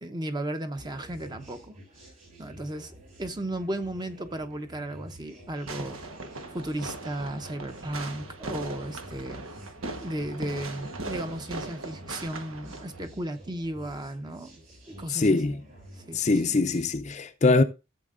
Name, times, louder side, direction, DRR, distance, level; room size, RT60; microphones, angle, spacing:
voice 1, 0.0-1.7 2.4-6.0 6.5-9.4 10.0-14.5 14.9-15.4 15.9-16.5, right 1 dB, 20° right, 0.8 m, -35 dB
sound 1, 0.8-16.9, equal, 40° right, 5.7 m, -49 dB
Fireworks, 5.7-13.1, right 2 dB, 90° right, 1.2 m, -39 dB
voice 2, 15.1-15.6 16.1-17.6, left 3 dB, 35° left, 0.5 m, -23 dB
14.5 x 7.5 x 2.5 m
head